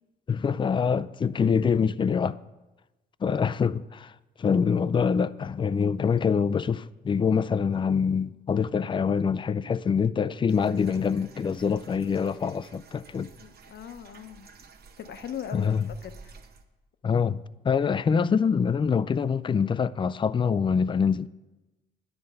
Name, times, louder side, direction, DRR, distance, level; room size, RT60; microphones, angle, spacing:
voice 1, 0.3-2.4 3.2-4.1 4.4-13.3 15.5-15.9 17.0-21.3, left 6 dB, 25° left, 0.3 m, -25 dB
sound 1, 10.5-16.6, right 5 dB, 55° right, 0.9 m, -51 dB
voice 2, 13.4-14.5 15.0-16.3, left 9 dB, 60° left, 0.8 m, -40 dB
10.5 x 7.8 x 5.5 m
cardioid pair, 90°, 20 cm